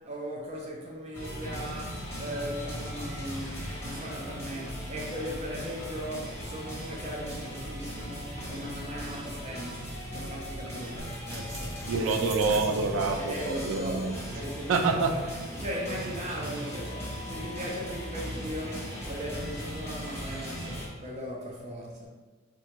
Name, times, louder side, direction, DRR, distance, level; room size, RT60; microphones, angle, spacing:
voice 1, 0.0-11.9 13.2-15.2 15.5-22.1, equal, 35° right, -2 dB, 0.5 m, -38 dB
sound 1, 1.1-20.9, equal, 15° left, 0.7 m, -38 dB
sound 2, 11.0-16.5, right 1 dB, 60° right, 1.1 m, -47 dB
voice 2, 11.9-14.1 14.7-15.1, right 4 dB, 90° right, 5 dB, 0.4 m, -27 dB
3.6 x 2.1 x 2.9 m, 1.4 s
head